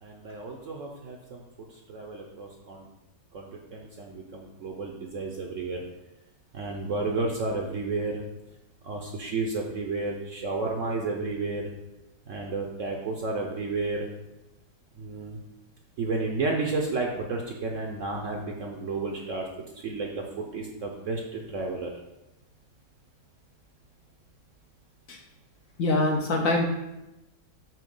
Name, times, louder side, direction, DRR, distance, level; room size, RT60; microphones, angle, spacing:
voice 1, 0.0-1.4 1.9-2.9 3.3-5.8 6.5-8.2 8.8-11.7 12.3-14.1 15.0-15.4 16.0-21.9, right 3 dB, 60° right, 1 dB, 0.8 m, -32 dB
voice 2, 25.8-26.7, left 2 dB, 65° left, 2 dB, 0.9 m, -24 dB
7.7 x 2.8 x 5.2 m, 0.97 s
omnidirectional pair, 1.9 m